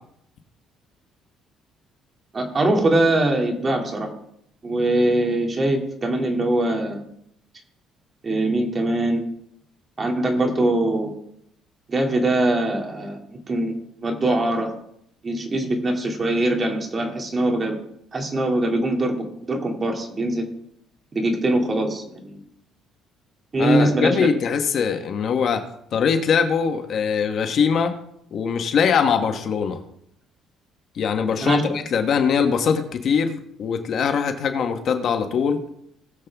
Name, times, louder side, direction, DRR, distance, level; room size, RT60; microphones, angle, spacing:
voice 1, 2.3-4.1 4.6-7.1 8.2-9.2 10.0-11.1 11.9-13.7 14.0-14.7 15.2-17.8 18.1-20.5 21.1-22.4 23.5-24.3 31.4-31.6, right 1 dB, 25° right, 2 dB, 2.5 m, -22 dB
voice 2, 23.6-25.6 25.9-27.9 28.3-29.8 30.9-35.6, left 6 dB, 50° left, 6 dB, 1.3 m, -22 dB
19.5 x 7.6 x 3.5 m, 0.73 s
cardioid pair, 135°, 0 cm